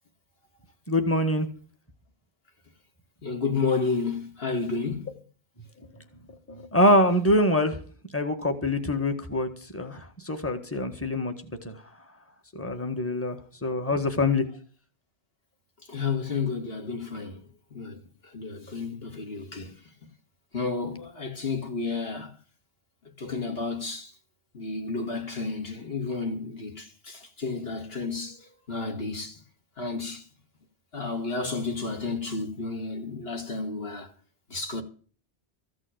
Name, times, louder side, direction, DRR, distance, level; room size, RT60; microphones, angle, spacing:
voice 1, 0.9-1.5 6.5-7.8 8.1-11.3 11.6-11.7 12.5-14.4, left 1 dB, 10° left, 1.7 m, -24 dB
voice 2, 3.2-5.1 15.9-19.8 20.5-22.3 23.0-24.1 24.5-29.4 29.8-30.3 30.9-34.1 34.5-34.8, left 4 dB, 60° left, 2.6 m, -31 dB
15.0 x 6.3 x 9.1 m
omnidirectional pair, 1.1 m